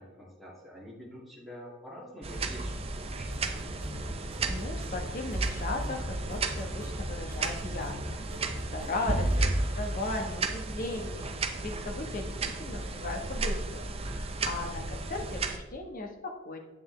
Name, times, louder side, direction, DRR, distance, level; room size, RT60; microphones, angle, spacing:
voice 1, 0.0-3.4 8.9-9.2, equal, ahead, -6 dB, 2.1 m, -47 dB
sound 1, 2.2-15.6, right 2 dB, 30° right, 0.6 m, -33 dB
sound 2, 3.2-9.4, equal, 75° right, 1.4 m, -42 dB
voice 2, 4.5-11.3 11.5-16.6, left 2 dB, 40° left, 3 dB, 1.2 m, -37 dB
8.6 x 7.8 x 3.3 m, 1.1 s
head